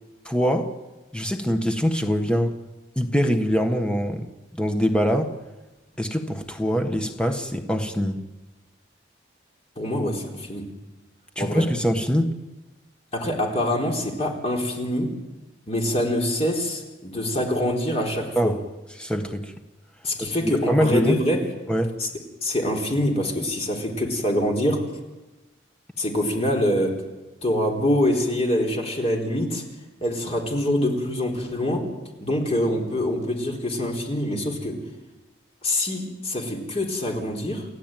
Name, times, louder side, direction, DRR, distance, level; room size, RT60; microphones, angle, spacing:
voice 1, 0.2-0.7 1.1-2.6 2.9-5.4 6.0-8.2 11.3-12.4 18.3-18.6 19.0-19.5 20.2-20.3 20.7-21.2 21.7-21.9, equal, 5° left, 5 dB, 1.4 m, -23 dB
voice 2, 9.8-10.7 11.4-11.7 13.1-15.1 15.7-18.5 20.0-21.4 22.0-22.1 22.4-24.8 26.0-27.0 27.4-29.6 30.0-31.9 32.2-34.8 35.6-37.7, left 1 dB, 30° left, 1 dB, 4.1 m, -25 dB
30.0 x 14.5 x 9.2 m, 1.1 s
head